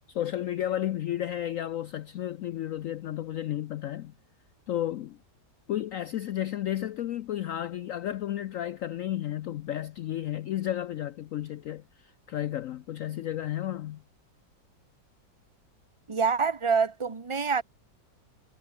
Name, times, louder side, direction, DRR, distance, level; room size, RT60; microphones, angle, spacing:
voice 1, 0.1-4.1 4.7-5.2 5.7-14.0, left 12 dB, 80° left, 0.7 m, -32 dB
voice 2, 16.1-17.6, right 5 dB, 20° right, 0.8 m, -26 dB
omnidirectional pair, 2.0 m